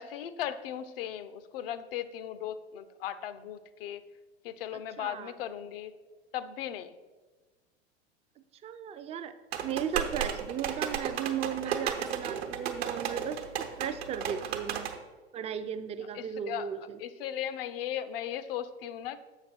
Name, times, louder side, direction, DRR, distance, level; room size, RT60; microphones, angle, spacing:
voice 1, 0.0-4.1 4.4-5.9 6.3-7.0 16.1-16.7 17.0-19.2, left 10 dB, 60° left, 13 dB, 0.6 m, -37 dB
voice 2, 5.0-5.3 8.6-14.9 15.3-17.0, right 8 dB, 20° right, 11 dB, 0.4 m, -36 dB
sound 1, 9.5-15.0, right 8 dB, 70° right, 1.0 m, -34 dB
7.2 x 5.9 x 4.3 m, 1.3 s
hypercardioid pair, 90°, 32 cm